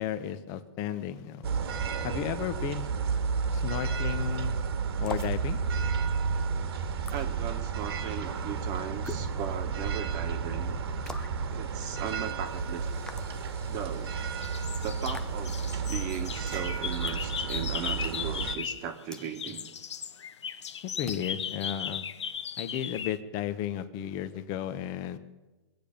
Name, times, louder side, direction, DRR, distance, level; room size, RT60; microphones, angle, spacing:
voice 1, 0.0-1.5 2.0-2.9 3.5-4.6 5.0-5.6 20.8-22.1 22.6-25.2, left 10 dB, 25° left, 12 dB, 0.9 m, -34 dB
sound 1, 1.4-18.6, right 5 dB, 65° right, 1.7 m, -32 dB
sound 2, 5.1-5.4 7.1-7.2 9.1-9.3 11.1-11.4 13.1-13.3 15.1-15.3 17.1-17.3 19.1-19.3 21.1-21.3, left 3 dB, 5° left, 0.5 m, -41 dB
voice 2, 7.1-10.8 11.5-12.9 13.7-14.1 14.8-15.5 15.9-19.7, right 8 dB, 25° right, 6 dB, 1.4 m, -37 dB
sound 3, 13.3-14.1 14.4-18.9 19.2-23.2, left 7 dB, 85° left, 0.9 m, -37 dB
24.0 x 8.6 x 5.2 m, 1.1 s
hypercardioid pair, 160°, 14 cm